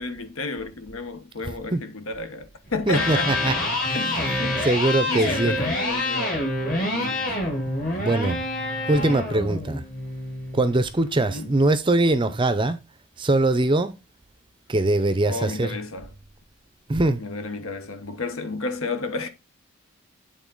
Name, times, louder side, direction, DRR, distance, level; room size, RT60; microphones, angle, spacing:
voice 1, 0.0-3.6 3.9-4.6 5.1-6.4 6.8-7.5 7.9-8.2 11.2-11.5 15.3-16.1 17.2-19.3, left 3 dB, 70° left, 1.0 m, -32 dB
Electric guitar, 2.9-10.9, left 1 dB, 40° left, 2.2 m, -27 dB
voice 2, 2.9-3.5 3.8-4.4 4.6-5.5 8.0-8.4 8.9-9.8 10.5-12.8 13.2-13.9 14.7-15.8 16.9-17.2, right 2 dB, 20° right, 0.5 m, -22 dB
8.4 x 3.8 x 3.8 m
head